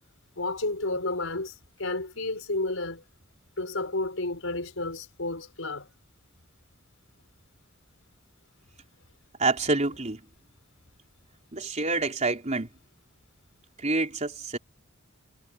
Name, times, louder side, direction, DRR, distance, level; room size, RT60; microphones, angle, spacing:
voice 1, 0.4-3.0 3.6-5.9, left 2 dB, 85° left, 4.8 m, -31 dB
voice 2, 9.4-10.2 11.5-12.7 13.8-14.6, right 3 dB, 35° right, 4.1 m, -27 dB
head